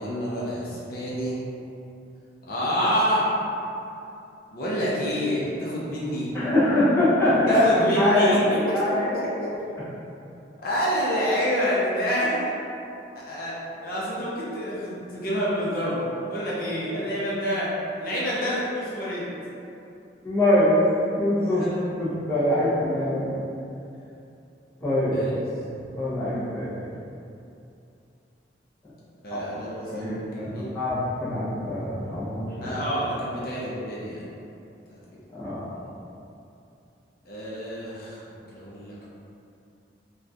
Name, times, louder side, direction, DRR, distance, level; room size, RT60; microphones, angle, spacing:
voice 1, 0.0-1.4 2.5-3.3 4.5-6.3 7.5-9.0 9.4-9.5 10.6-12.5 13.2-19.3 21.4-21.8 25.1-25.4 29.2-30.8 32.6-34.2 34.9-35.2 37.2-39.1, equal, 55° left, -7 dB, 0.6 m, -28 dB
voice 2, 6.3-7.6 7.9-8.3 8.7-9.1 20.2-20.8 21.2-21.7 22.0-23.3 24.8-25.2 26.0-26.7 29.3-29.4 29.9-32.7 35.3-35.7, left 1 dB, 15° left, -11 dB, 0.6 m, -23 dB
3.5 x 2.3 x 2.7 m, 2.7 s
head